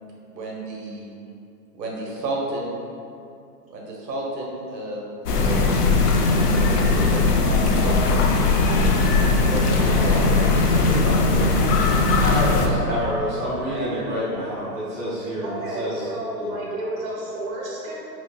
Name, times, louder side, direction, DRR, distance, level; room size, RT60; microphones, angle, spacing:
voice 1, 0.3-1.1 1.8-2.7 3.7-5.7 6.5-8.3 9.2-12.2 12.6-12.8 13.7-14.1, right 2 dB, 85° right, -3 dB, 0.9 m, -32 dB
sound 1, 5.3-12.7, left 3 dB, 70° left, 0.6 m, -19 dB
voice 2, 9.8-10.2 15.4-18.0, right 1 dB, 60° right, -4 dB, 1.3 m, -31 dB
voice 3, 12.2-16.6, equal, 5° right, -16 dB, 0.9 m, -28 dB
6.0 x 2.0 x 2.3 m, 2.5 s
hypercardioid pair, 165°, 49 cm